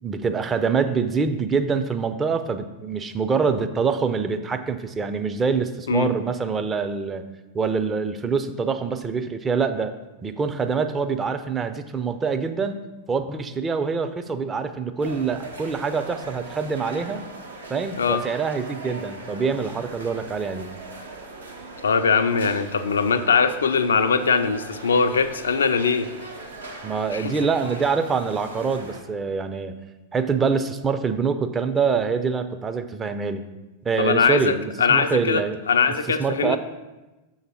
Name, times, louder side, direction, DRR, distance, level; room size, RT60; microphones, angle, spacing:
voice 1, 0.0-7.2 7.5-9.9 10.2-12.8 13.1-17.2 17.7-20.8 26.8-29.8 30.1-33.4 33.8-35.6 36.2-36.6, right 5 dB, 20° right, 9 dB, 0.5 m, -25 dB
sound 1, 15.0-29.0, right 2 dB, 75° right, 1.0 m, -40 dB
voice 2, 21.8-26.1 27.1-27.3 34.0-35.4 35.7-36.6, left 5 dB, 70° left, 10 dB, 0.4 m, -21 dB
6.6 x 4.0 x 6.0 m, 1.1 s
figure-of-eight pair, 90°, 0 cm